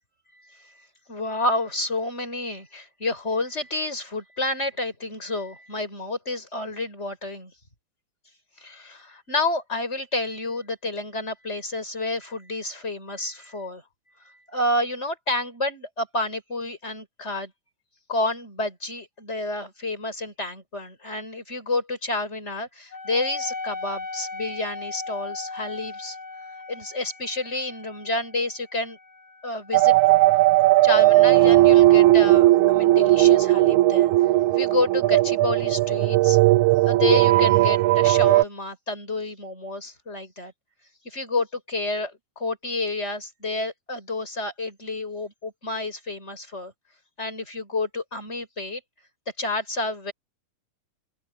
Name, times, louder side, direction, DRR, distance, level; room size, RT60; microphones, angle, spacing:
voice 1, 0.4-0.7 1.1-7.5 8.6-13.8 14.2-17.5 18.1-26.2 26.7-29.0 29.4-29.9 30.8-34.1 34.5-36.4 36.8-40.5 41.0-46.7 47.2-48.8 49.4-50.1, left 2 dB, 20° left, 6.4 m, -29 dB
Wind instrument woodwind instrument, 22.9-31.9, left 3 dB, 65° left, 8.7 m, -38 dB
sound 1, 29.7-38.4, right 17 dB, 90° right, 1.7 m, -17 dB
open air
omnidirectional pair, 4.0 m